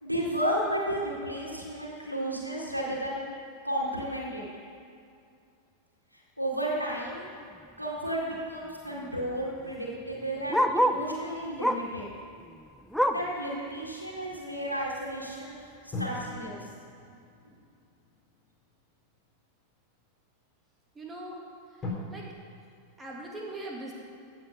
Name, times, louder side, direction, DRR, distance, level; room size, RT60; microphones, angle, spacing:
voice 1, 0.0-3.2 3.6-4.4 6.4-7.2 7.8-12.1 13.1-15.5 16.0-16.5, right 1 dB, 90° left, -4 dB, 2.1 m, -32 dB
Bark, 7.4-7.6 8.0-8.1 8.3-11.1 11.6-12.0 12.4-13.4 13.8-13.9 14.3-14.4 15.1-15.2, equal, ahead, 0.5 m, -28 dB
sound 1, 10.5-13.0 15.9-19.3 20.0-20.1 21.8-21.9, left 2 dB, 20° left, 3.4 m, -43 dB
voice 2, 20.9-21.4 21.7-22.3 23.0-23.9, right 2 dB, 15° right, -2 dB, 2.5 m, -41 dB
15.5 x 7.4 x 5.4 m, 2.4 s
figure-of-eight pair, 90°, 0 cm